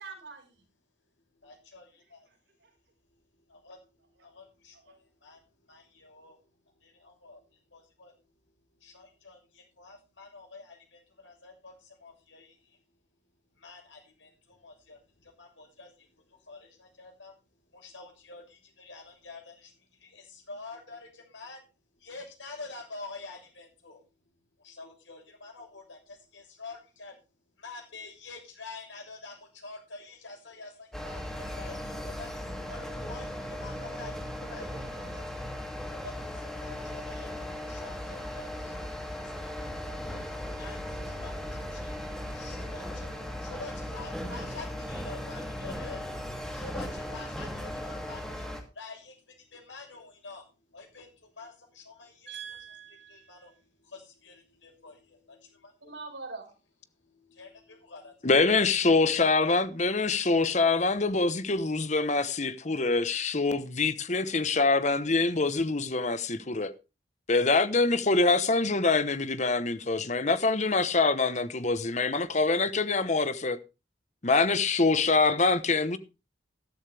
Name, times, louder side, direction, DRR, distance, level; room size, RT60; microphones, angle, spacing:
voice 1, 0.0-0.5 2.6-2.7 4.2-4.3 4.8-5.0 52.3-53.6 55.9-56.6, right 5 dB, 75° right, 4.9 m, -43 dB
voice 2, 1.4-2.3 3.5-3.8 4.2-6.4 6.8-8.1 8.8-12.8 13.5-17.3 17.7-21.7 22.0-24.0 24.6-27.1 27.6-32.3 32.7-35.5 35.9-37.3 37.6-40.2 40.6-52.6 53.1-55.5 57.0-58.4 59.1-59.2, left 3 dB, 90° left, 6.6 m, -48 dB
sound 1, 30.9-48.6, left 1 dB, 5° left, 2.5 m, -37 dB
voice 3, 58.2-66.7 67.3-73.6 74.2-76.0, left 3 dB, 40° left, 1.0 m, -25 dB
14.0 x 12.5 x 3.4 m
head